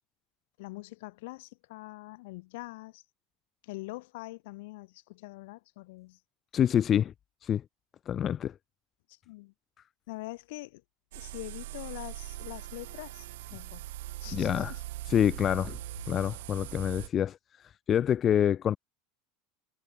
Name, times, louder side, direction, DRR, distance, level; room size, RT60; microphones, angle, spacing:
voice 1, 0.6-3.0 3.6-6.2 9.1-9.5 10.1-10.8 11.1-13.3 13.5-13.9 14.2-14.8, left 22 dB, 65° left, 6.0 m, -44 dB
voice 2, 6.5-7.1 7.4-7.6 8.1-8.5 14.3-14.8 15.1-15.8 16.1-17.4 17.9-18.8, left 9 dB, 25° left, 1.9 m, -26 dB
sound 1, 11.1-17.1, right 18 dB, 80° right, 6.2 m, -41 dB
supercardioid pair, 165°, 0 cm